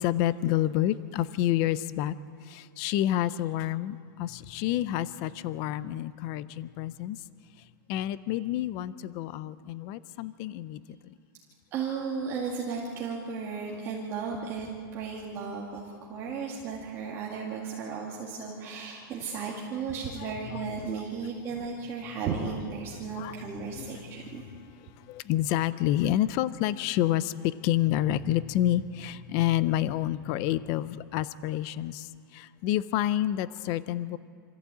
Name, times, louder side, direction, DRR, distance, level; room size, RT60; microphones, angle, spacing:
voice 1, 0.0-2.2 2.4-7.2 7.9-11.2 20.5-20.7 23.1-23.5 23.7-24.4 24.8-34.2, left 13 dB, 25° left, 17 dB, 0.5 m, -29 dB
voice 2, 11.7-24.4 32.8-33.0, right 5 dB, 20° right, -4 dB, 2.1 m, -35 dB
26.5 x 14.5 x 8.4 m, 2.2 s
supercardioid pair, 170°, 12 cm